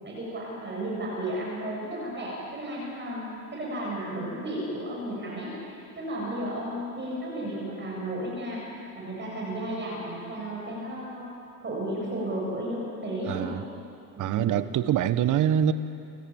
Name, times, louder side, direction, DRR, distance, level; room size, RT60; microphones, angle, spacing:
voice 1, 0.0-3.2 3.5-8.6 8.9-11.3 11.6-13.6 14.1-14.6, right 1 dB, 25° right, -4 dB, 7.9 m, -33 dB
voice 2, 13.3-13.6 14.2-15.7, right 10 dB, 45° right, 12 dB, 1.3 m, -24 dB
27.5 x 14.5 x 9.0 m, 2.6 s
hypercardioid pair, 95°, 44 cm